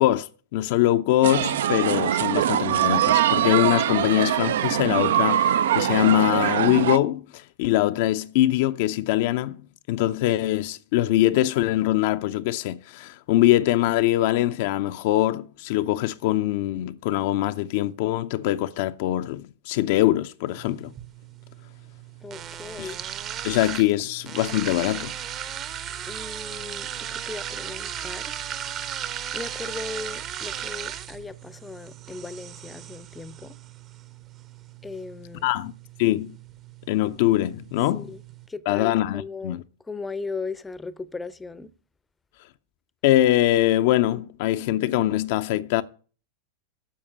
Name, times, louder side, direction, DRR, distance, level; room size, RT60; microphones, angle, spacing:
voice 1, 0.0-20.9 22.8-22.9 23.4-25.1 35.4-35.7 36.0-36.4 36.9-38.1 38.7-39.6 43.0-45.8, left 14 dB, 50° left, 0.5 m, -23 dB
sound 1, 1.2-7.0, right 11 dB, 60° right, 0.4 m, -22 dB
sound 2, 20.5-38.5, right 10 dB, 35° right, 0.9 m, -37 dB
voice 2, 22.2-23.0 26.0-28.3 29.3-33.6 34.8-35.5 37.9-38.2 38.5-41.7, left 4 dB, 10° left, 0.6 m, -37 dB
10.0 x 7.0 x 8.3 m
figure-of-eight pair, 90°, 0 cm